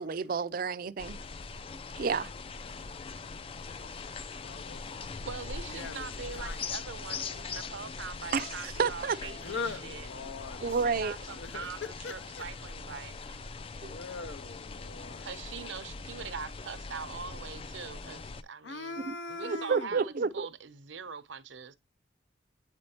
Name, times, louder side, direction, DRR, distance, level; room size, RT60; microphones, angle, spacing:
voice 1, 0.0-1.2 2.0-2.3 8.3-9.2 10.6-11.1 13.8-13.9 19.0-19.1 19.4-20.5, right 5 dB, 50° right, 0.4 m, -30 dB
sound 1, 1.0-18.4, left 4 dB, 30° left, 0.3 m, -41 dB
voice 2, 2.6-3.0 3.4-5.1 5.7-6.8 9.4-10.6 11.3-12.6 13.9-15.3 18.6-20.0, left 4 dB, 75° left, 0.6 m, -42 dB
voice 3, 5.3-10.1 10.6-13.4 15.2-21.7, right 6 dB, 85° right, 0.7 m, -43 dB
8.4 x 4.3 x 2.8 m
head